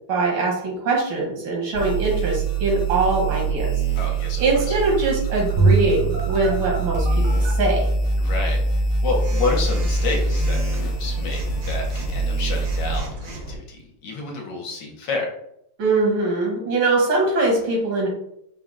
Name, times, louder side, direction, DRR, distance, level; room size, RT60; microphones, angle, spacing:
voice 1, 0.1-3.8 4.4-7.1 7.3-7.9 15.8-18.1, right 2 dB, 85° right, -2 dB, 2.1 m, -22 dB
sound 1, 1.7-13.0, right 3 dB, 45° left, 1.1 m, -24 dB
voice 2, 4.0-4.8 8.2-15.3, left 4 dB, 70° left, 1 dB, 1.4 m, -30 dB
Bowed string instrument, 5.5-7.9, right 3 dB, 15° right, 0.6 m, -24 dB
Telephone, 6.1-7.5 9.2-13.6, right 1 dB, 60° right, 0.9 m, -35 dB
4.7 x 2.2 x 3.7 m, 0.75 s
omnidirectional pair, 2.1 m